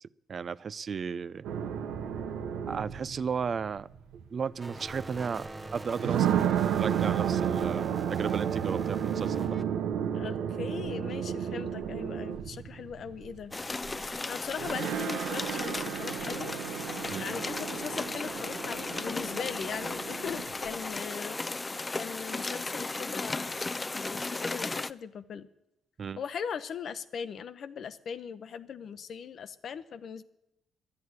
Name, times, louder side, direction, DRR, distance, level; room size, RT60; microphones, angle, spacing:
voice 1, 0.0-1.5 2.7-3.9 4.3-6.5 6.8-9.6 17.1-17.3 26.0-26.2, right 6 dB, 45° right, 18 dB, 0.4 m, -34 dB
sound 1, 1.4-4.2 5.2-5.3 5.9-14.1 14.5-20.9, right 9 dB, 85° right, 0.9 m, -32 dB
sound 2, 4.6-9.6, right 2 dB, 15° right, 0.8 m, -43 dB
voice 2, 10.1-13.5 14.3-16.5 17.2-21.6 21.9-23.6 23.9-25.5 26.2-30.2, left 7 dB, 60° left, 14 dB, 0.8 m, -39 dB
sound 3, 13.5-24.9, left 3 dB, 20° left, 0.4 m, -35 dB
11.5 x 10.5 x 9.6 m, 0.89 s
cardioid pair, 90°, 0 cm